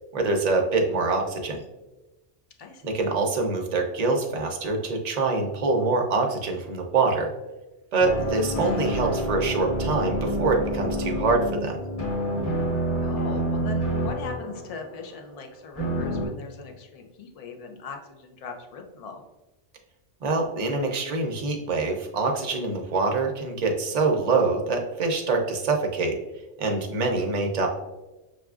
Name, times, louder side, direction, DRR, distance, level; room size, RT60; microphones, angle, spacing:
voice 1, 0.1-1.6 2.8-7.3 7.9-11.8 20.2-26.2 26.6-27.7, right 3 dB, 45° right, 2 dB, 0.6 m, -25 dB
voice 2, 2.6-2.9 13.0-19.2, left 4 dB, 60° left, 4 dB, 0.4 m, -39 dB
sound 1, 8.0-15.1 15.7-16.3, equal, 15° left, 1.2 m, -28 dB
6.2 x 2.3 x 2.3 m, 1.1 s
omnidirectional pair, 1.2 m